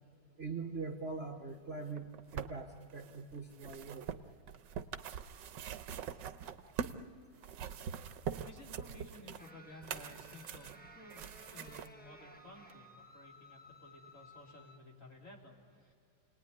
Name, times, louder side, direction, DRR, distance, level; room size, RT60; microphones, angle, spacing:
voice 1, 0.4-4.1, right 4 dB, 40° right, 2 dB, 1.3 m, -42 dB
sound 1, 1.9-7.0 7.4-11.9 12.7-12.8, right 8 dB, 70° right, 1.4 m, -43 dB
voice 2, 8.4-10.7 10.9-12.9 13.1-15.9, left 1 dB, 40° left, -1 dB, 3.5 m, -55 dB
sound 2, 9.4-14.8, left 1 dB, 10° left, 0.5 m, -57 dB
29.0 x 19.0 x 9.6 m, 2.3 s
omnidirectional pair, 2.1 m